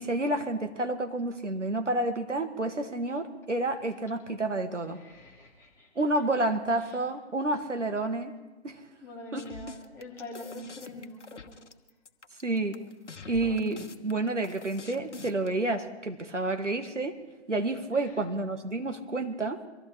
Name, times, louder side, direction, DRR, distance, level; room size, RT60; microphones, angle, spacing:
voice 1, 0.0-5.0 6.0-8.3 8.6-8.8 9.3-9.5 12.4-12.8 13.3-17.2 17.5-19.6, right 2 dB, 90° right, 6 dB, 1.7 m, -29 dB
voice 2, 4.9-6.0 6.8-7.0 9.0-11.6 17.9-18.2, left 1 dB, 5° left, -3 dB, 1.8 m, -45 dB
sound 1, 9.4-15.5, left 4 dB, 80° left, 1.4 m, -45 dB
24.5 x 14.5 x 3.3 m, 1.1 s
figure-of-eight pair, 145°, 35 cm